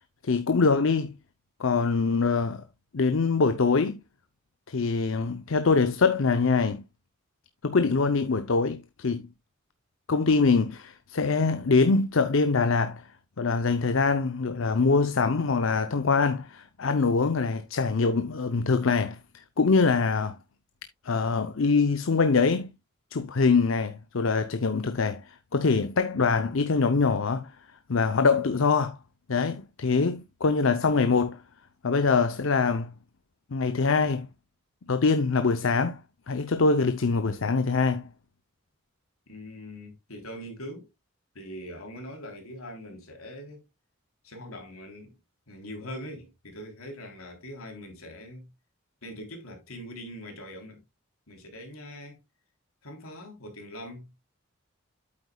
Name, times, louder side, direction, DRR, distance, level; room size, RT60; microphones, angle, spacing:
voice 1, 0.2-1.1 1.6-2.6 2.9-4.0 4.7-6.8 7.6-9.3 10.1-13.1 13.4-20.4 21.0-22.7 23.1-27.5 27.9-29.0 29.3-31.4 31.8-32.9 33.5-34.3 34.9-36.0 36.3-38.1, left 4 dB, 65° left, 0.6 m, -24 dB
voice 2, 39.3-40.9 41.3-43.6 44.2-45.2 45.5-48.5 49.0-50.8 51.3-52.2 52.8-54.1, equal, 85° left, 3.4 m, -42 dB
8.6 x 8.2 x 2.3 m
head